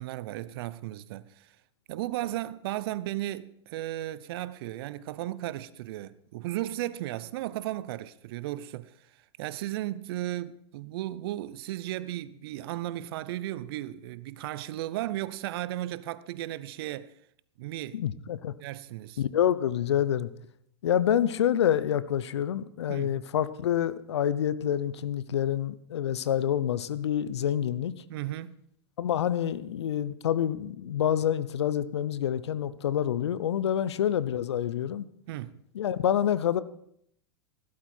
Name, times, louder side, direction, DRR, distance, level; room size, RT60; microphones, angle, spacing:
voice 1, 0.0-1.5 1.9-8.9 9.4-17.1 17.6-18.0 18.6-19.2 22.9-23.1 28.1-28.6 35.3-35.6, right 15 dB, 60° right, 0.8 m, -35 dB
voice 2, 17.9-18.5 19.2-20.3 20.8-27.9 29.0-35.1 35.7-36.6, left 10 dB, 75° left, 0.8 m, -27 dB
15.5 x 12.5 x 4.5 m
hypercardioid pair, 100°, 14 cm